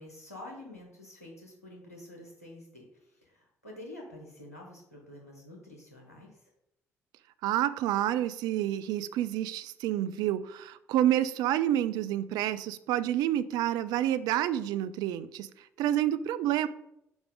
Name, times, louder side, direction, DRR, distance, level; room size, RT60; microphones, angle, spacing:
voice 1, 0.0-6.4, left 1 dB, 85° left, -2 dB, 1.3 m, -48 dB
voice 2, 7.4-15.5 15.8-16.7, right 12 dB, 55° right, 14 dB, 0.4 m, -28 dB
6.1 x 4.7 x 3.8 m, 0.81 s
figure-of-eight pair, 50°, 8 cm